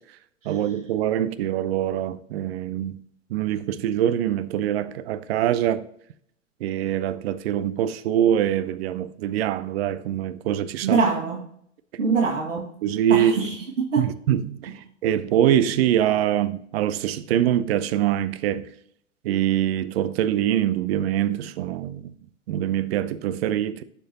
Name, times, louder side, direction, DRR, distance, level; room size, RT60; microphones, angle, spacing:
voice 1, 0.5-3.0 3.3-5.9 6.6-11.0 12.8-13.4 14.0-18.6 19.2-22.1 22.5-23.8, right 11 dB, 55° right, 0.6 m, -24 dB
voice 2, 10.8-11.5 12.0-12.7 13.1-14.1, right 5 dB, 80° right, 1.9 m, -24 dB
12.0 x 4.6 x 2.9 m
figure-of-eight pair, 100°, 37 cm